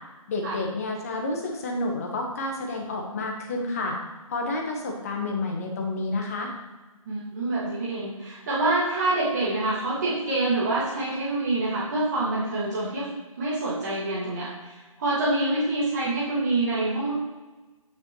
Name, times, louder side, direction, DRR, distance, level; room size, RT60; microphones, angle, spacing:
voice 1, 0.3-4.0 4.3-6.5, left 2 dB, 25° left, 1 dB, 1.1 m, -30 dB
voice 2, 7.0-13.1 13.4-17.1, right 2 dB, 30° right, -7 dB, 1.7 m, -26 dB
9.1 x 5.9 x 3.0 m, 1.2 s
hypercardioid pair, 165°, 18 cm